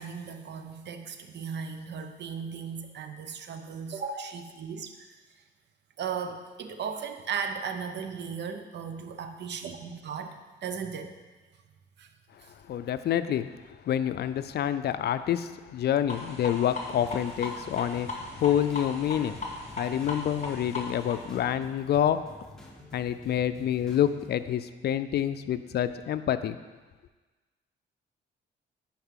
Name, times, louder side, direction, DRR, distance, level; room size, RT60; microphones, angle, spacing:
voice 1, 0.0-5.2 6.0-11.2 12.0-12.1 12.4-12.5, right 6 dB, 60° right, 7 dB, 0.8 m, -36 dB
voice 2, 12.7-13.5 13.9-19.4 19.7-22.2 22.9-26.6, left 10 dB, 55° left, 12 dB, 0.4 m, -27 dB
sound 1, 16.1-21.4, left 2 dB, 35° left, 1.6 m, -38 dB
sound 2, 17.0-24.4, left 1 dB, 5° left, 1.3 m, -50 dB
10.5 x 4.4 x 3.7 m, 1.3 s
cardioid pair, 90°, 20 cm